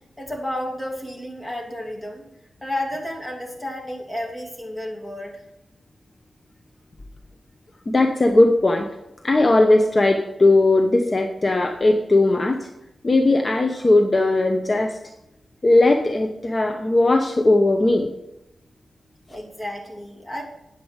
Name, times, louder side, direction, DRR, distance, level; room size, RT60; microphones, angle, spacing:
voice 1, 0.2-2.3 2.6-5.4 19.3-20.4, left 1 dB, 10° left, -2 dB, 2.7 m, -31 dB
voice 2, 7.9-8.9 9.2-12.7 13.0-15.0 15.6-18.1, left 2 dB, 35° left, 4 dB, 0.8 m, -18 dB
9.2 x 8.1 x 4.8 m, 0.88 s
wide cardioid pair, 80°, 0 cm